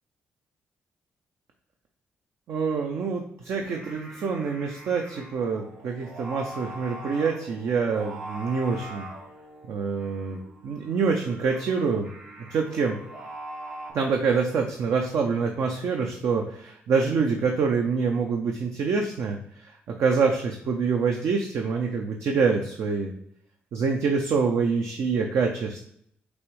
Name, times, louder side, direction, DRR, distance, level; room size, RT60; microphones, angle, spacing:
voice 1, 2.5-9.1 9.7-12.1 12.5-13.0 13.9-19.4 19.6-19.7 20.0-23.1 23.7-25.8, right 5 dB, 65° right, 2 dB, 0.5 m, -26 dB
Singing, 3.4-13.9, right 1 dB, 85° right, 1.8 m, -42 dB
6.2 x 2.6 x 3.1 m, 0.70 s
hypercardioid pair, 45°, 5 cm